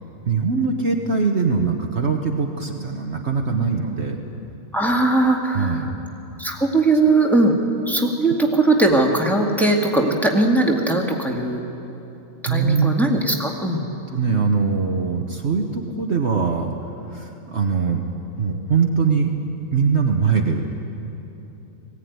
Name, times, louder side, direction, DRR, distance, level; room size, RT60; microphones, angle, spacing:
voice 1, 0.2-4.2 5.5-5.9 12.5-12.9 14.1-18.0 18.4-19.4 19.7-20.8, right 5 dB, 55° right, 2 dB, 1.3 m, -22 dB
voice 2, 4.7-5.8 6.4-7.6 7.9-11.6 12.4-13.8, right 2 dB, ahead, 0 dB, 1.9 m, -19 dB
20.0 x 16.5 x 9.5 m, 2.9 s
omnidirectional pair, 1.5 m